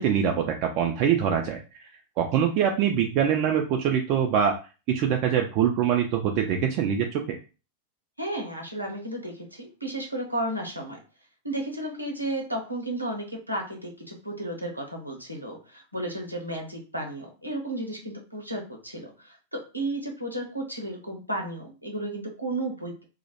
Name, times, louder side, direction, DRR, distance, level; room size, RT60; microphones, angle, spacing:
voice 1, 0.0-1.6 2.2-4.6 4.9-7.4, right 8 dB, 40° right, 2 dB, 0.3 m, -24 dB
voice 2, 8.2-11.0 11.4-23.0, right 1 dB, 90° right, 1 dB, 0.7 m, -33 dB
2.1 x 2.1 x 2.8 m, 0.33 s
figure-of-eight pair, 90°, 0 cm